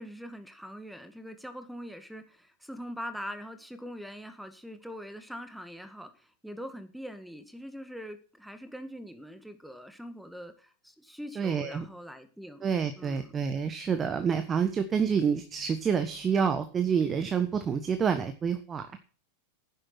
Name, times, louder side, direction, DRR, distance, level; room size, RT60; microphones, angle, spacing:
voice 1, 0.0-13.5, equal, ahead, 9 dB, 2.0 m, -43 dB
voice 2, 11.4-11.8 12.6-19.0, right 6 dB, 20° right, 8 dB, 1.3 m, -28 dB
12.0 x 10.0 x 6.0 m, 0.39 s
figure-of-eight pair, 90°, 0 cm